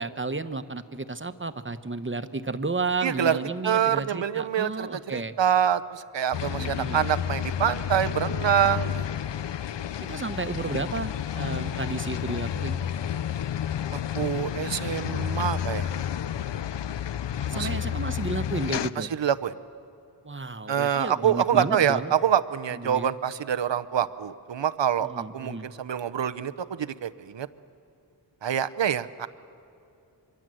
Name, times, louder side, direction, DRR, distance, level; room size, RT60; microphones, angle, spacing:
voice 1, 0.0-5.3 6.5-7.1 10.0-12.8 17.5-19.1 20.2-22.1 22.8-23.1 25.0-25.7, right 3 dB, 30° right, 10 dB, 1.0 m, -32 dB
voice 2, 3.0-3.4 3.6-9.0 13.9-16.1 17.5-17.8 19.0-19.5 20.7-27.5 28.4-29.3, right 9 dB, 90° right, 13 dB, 0.8 m, -26 dB
sound 1, 6.3-18.9, left 9 dB, 80° left, 0.6 m, -30 dB
25.0 x 24.0 x 7.7 m, 2.7 s
wide cardioid pair, 60°, 42 cm